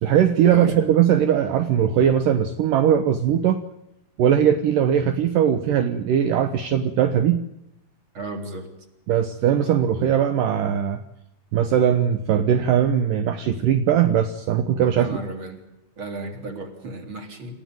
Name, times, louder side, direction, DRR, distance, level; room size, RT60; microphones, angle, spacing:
voice 1, 0.0-3.7 4.2-7.5 9.1-11.0 11.5-15.1, right 9 dB, 70° right, 9 dB, 2.2 m, -20 dB
voice 2, 8.1-8.7 14.9-15.6 16.0-17.6, right 2 dB, 30° right, 5 dB, 3.9 m, -34 dB
28.0 x 15.0 x 9.3 m, 0.85 s
omnidirectional pair, 5.1 m